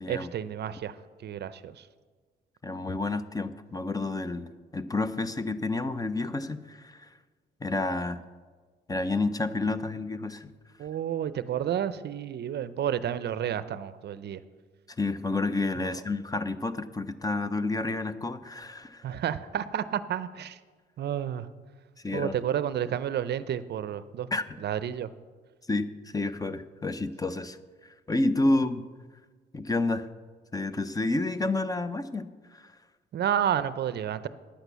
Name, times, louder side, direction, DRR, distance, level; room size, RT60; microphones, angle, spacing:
voice 1, 0.1-1.9 10.8-14.4 15.8-16.0 19.0-20.6 21.0-21.5 22.1-24.3 24.6-25.1 33.1-34.3, right 9 dB, 55° right, 15 dB, 0.5 m, -31 dB
voice 2, 2.6-4.5 4.7-7.1 7.6-8.2 8.9-10.5 15.0-19.0 22.0-22.3 24.3-24.4 25.7-27.6 27.8-28.8 29.5-30.1 30.5-32.7, left 2 dB, 20° left, 12 dB, 0.6 m, -30 dB
10.0 x 8.1 x 6.8 m, 1.4 s
cardioid pair, 90°, 20 cm